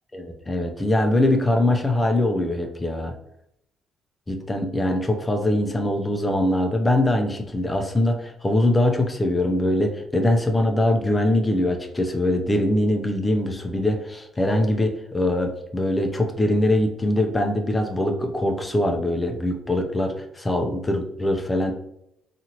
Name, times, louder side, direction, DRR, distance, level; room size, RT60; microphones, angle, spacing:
voice 1, 0.1-3.2 4.3-21.7, left 1 dB, 25° left, 3 dB, 0.5 m, -22 dB
2.7 x 2.5 x 2.9 m, 0.76 s
supercardioid pair, 55°, 0 cm